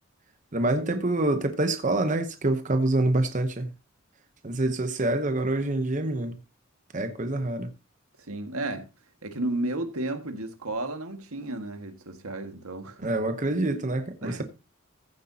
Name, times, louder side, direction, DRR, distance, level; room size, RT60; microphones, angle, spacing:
voice 1, 0.5-3.7 4.4-6.4 6.9-7.7 13.0-14.4, right 2 dB, 35° right, 0.9 m, -26 dB
voice 2, 8.3-8.9 9.2-13.1 14.2-14.4, right 2 dB, 90° right, 1.8 m, -33 dB
15.0 x 8.1 x 2.8 m
head